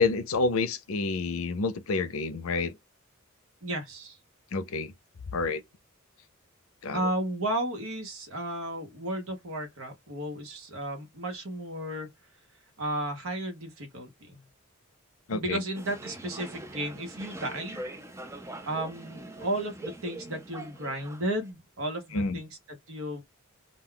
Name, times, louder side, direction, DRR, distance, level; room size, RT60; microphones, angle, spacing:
voice 1, 0.0-2.7 4.5-4.9 5.3-5.6 6.8-7.0 15.3-15.6 22.1-22.4, left 3 dB, 75° left, 0.5 m, -28 dB
voice 2, 3.6-4.2 6.9-12.1 12.8-14.4 15.3-17.8 18.6-23.2, right 1 dB, 75° right, 1.0 m, -34 dB
sound 1, 15.7-21.5, right 2 dB, 15° right, 0.4 m, -43 dB
2.3 x 2.3 x 3.7 m
head